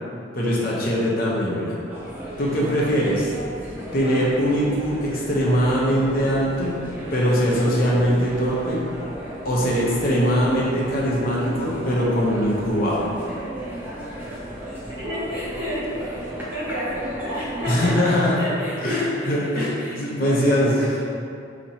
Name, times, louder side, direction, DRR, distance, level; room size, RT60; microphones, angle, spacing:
voice 1, 0.4-1.8 2.4-3.3 3.9-6.8 7.1-8.8 9.4-13.1 17.7-18.4 18.8-19.7 20.0-20.8, equal, 50° left, -5 dB, 0.7 m, -21 dB
sound 1, 1.9-17.9, right 1 dB, 10° right, 0.5 m, -34 dB
voice 2, 14.6-21.1, equal, 50° right, -14 dB, 1.5 m, -31 dB
2.9 x 2.8 x 4.1 m, 2.3 s
head